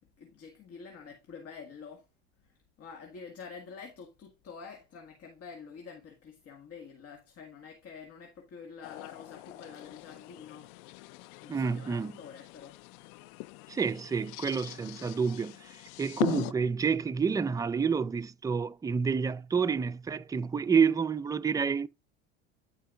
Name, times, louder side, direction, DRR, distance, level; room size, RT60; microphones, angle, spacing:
voice 1, 0.2-2.1 2.4-10.7 11.4-12.8, left 5 dB, 45° left, 1.7 m, -48 dB
sound 1, 8.8-16.5, left 22 dB, 65° left, 0.4 m, -41 dB
voice 2, 11.5-12.1 13.7-21.9, right 6 dB, 10° right, 0.4 m, -29 dB
12.5 x 4.6 x 2.4 m
hypercardioid pair, 85°, 34 cm